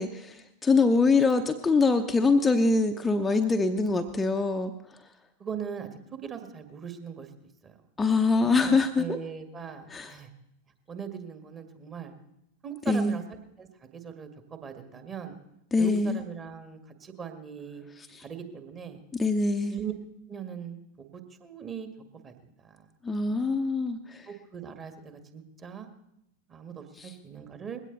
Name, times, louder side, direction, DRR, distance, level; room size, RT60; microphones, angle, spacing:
voice 1, 0.0-4.7 8.0-9.2 9.9-10.1 12.9-13.2 15.7-16.2 18.0-18.2 19.1-19.8 23.0-24.3 27.0-27.1, left 3 dB, 10° left, 6 dB, 0.8 m, -24 dB
voice 2, 5.4-7.3 7.6-7.8 8.4-10.3 10.9-12.1 12.6-13.2 13.6-15.4 15.8-17.8 18.2-19.0 19.7-19.9 20.3-21.9 22.2-22.9 24.3-25.9 26.5-27.8, right 7 dB, 25° right, 7 dB, 1.9 m, -40 dB
21.0 x 16.5 x 4.0 m, 0.83 s
figure-of-eight pair, 90°, 0 cm